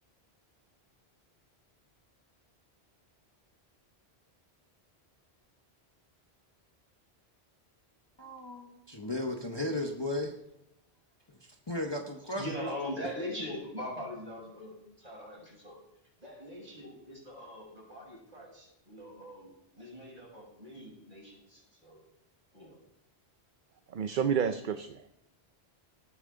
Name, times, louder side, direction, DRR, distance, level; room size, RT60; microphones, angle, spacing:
voice 1, 8.2-10.3 11.3-11.4 11.7-12.4, left 1 dB, 25° left, 2 dB, 1.1 m, -35 dB
voice 2, 12.3-15.8 16.2-22.0 22.5-22.8, left 1 dB, 35° right, -3 dB, 6.5 m, -42 dB
voice 3, 23.9-25.2, right 7 dB, 55° right, 9 dB, 0.7 m, -30 dB
18.5 x 9.1 x 3.9 m, 0.83 s
omnidirectional pair, 1.1 m